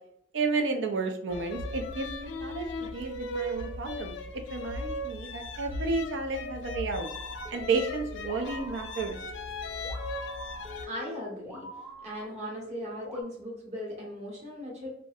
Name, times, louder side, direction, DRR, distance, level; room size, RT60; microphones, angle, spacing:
voice 1, 0.3-7.1 7.5-9.2, right 3 dB, 90° right, 4 dB, 0.4 m, -32 dB
sound 1, 1.3-10.9, left 2 dB, 85° left, 0.3 m, -37 dB
sound 2, 7.0-13.2, equal, ahead, 0.4 m, -45 dB
voice 2, 10.8-11.7 12.0-14.9, left 1 dB, 35° right, -2 dB, 0.8 m, -38 dB
2.4 x 2.1 x 2.6 m, 0.75 s
head